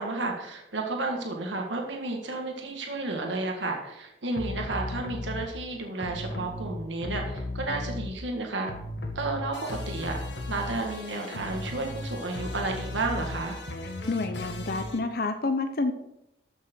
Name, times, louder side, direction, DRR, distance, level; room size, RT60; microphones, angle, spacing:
voice 1, 0.0-8.7 9.1-10.2 10.5-13.6, right 2 dB, 75° right, 2 dB, 1.6 m, -32 dB
sound 1, 4.3-5.5 6.0-8.4 8.6-15.0, left 2 dB, 70° left, 1.5 m, -36 dB
voice 2, 14.1-15.9, left 3 dB, 50° left, 8 dB, 0.6 m, -28 dB
13.5 x 6.6 x 4.5 m, 0.86 s
head